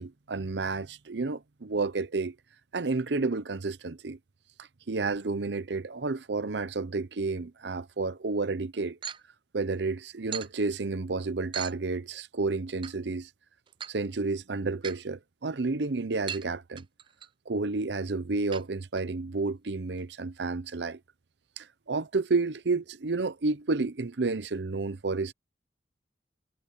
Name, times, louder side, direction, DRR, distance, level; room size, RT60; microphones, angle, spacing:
voice 1, 0.0-2.4 2.7-4.2 4.9-9.0 9.5-13.3 13.9-16.8 17.5-21.0 21.6-25.3, right 3 dB, 75° right, 0.8 m, -31 dB
sound 1, 9.0-9.2 10.3-10.5 11.5-11.7 12.8-12.9 13.7-13.9 14.8-15.0 16.3-16.5 16.8-17.3 18.5-18.6 19.0-19.1 19.4-19.5 20.0-20.1, right 8 dB, 30° right, 0.4 m, -38 dB
head